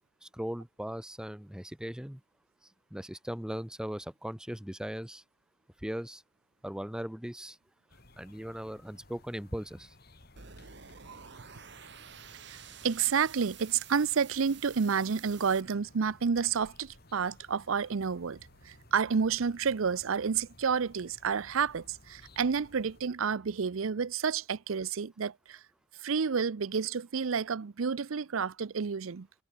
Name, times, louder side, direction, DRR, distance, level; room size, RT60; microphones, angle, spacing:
voice 1, 0.2-2.2 2.9-5.2 5.8-6.2 6.6-7.6 8.2-9.9, equal, 5° right, 0.5 m, -38 dB
sound 1, 7.9-23.0, left 1 dB, 50° left, 3.3 m, -58 dB
sound 2, 10.4-15.6, right 8 dB, 55° right, 1.7 m, -50 dB
voice 2, 12.4-18.4 18.6-25.6 26.0-29.3, right 6 dB, 85° right, 0.6 m, -30 dB
head